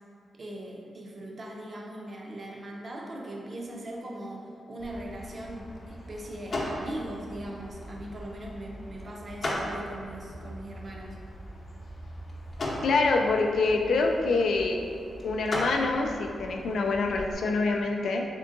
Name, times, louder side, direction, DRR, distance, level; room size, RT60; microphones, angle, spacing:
voice 1, 0.3-11.2, right 1 dB, 40° right, -1 dB, 0.5 m, -40 dB
sound 1, 4.8-17.3, left 1 dB, 50° left, 0.7 m, -38 dB
voice 2, 12.8-14.8 15.2-18.3, left 3 dB, 80° left, 3 dB, 0.3 m, -25 dB
3.6 x 3.5 x 2.5 m, 2.4 s
wide cardioid pair, 135°, 0 cm